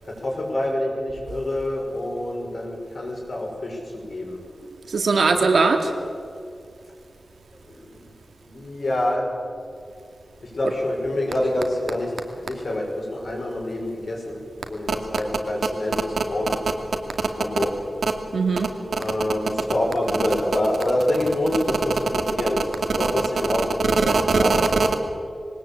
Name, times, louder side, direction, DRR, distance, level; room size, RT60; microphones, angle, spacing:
voice 1, 0.1-4.4 5.2-5.5 7.7-8.1 8.4-9.3 10.4-12.1 12.4-16.6 17.4-17.7 19.0-24.6, left 1 dB, 55° left, 0 dB, 5.9 m, -27 dB
voice 2, 4.9-5.9 18.3-18.7 24.3-24.6, right 4 dB, 90° right, 5 dB, 2.2 m, -19 dB
20.5 x 19.0 x 8.7 m, 2.4 s
wide cardioid pair, 115°, 0 cm